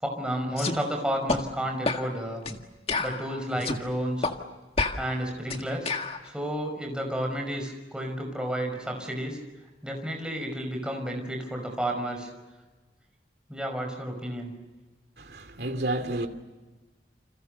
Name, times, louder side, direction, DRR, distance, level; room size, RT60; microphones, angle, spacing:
voice 1, 0.0-2.4 3.0-4.3 5.0-5.9 6.2-9.4 9.8-12.3 13.5-14.5, equal, 5° right, 5.6 m, -31 dB
sound 1, 0.6-0.8 1.3-1.4 1.9-2.1 2.5-2.6 2.9-3.8 4.2-4.4 4.8-6.2, left 3 dB, 35° left, 2.0 m, -29 dB
voice 2, 15.2-16.3, right 1 dB, 65° right, 2.8 m, -30 dB
29.5 x 27.5 x 6.8 m
head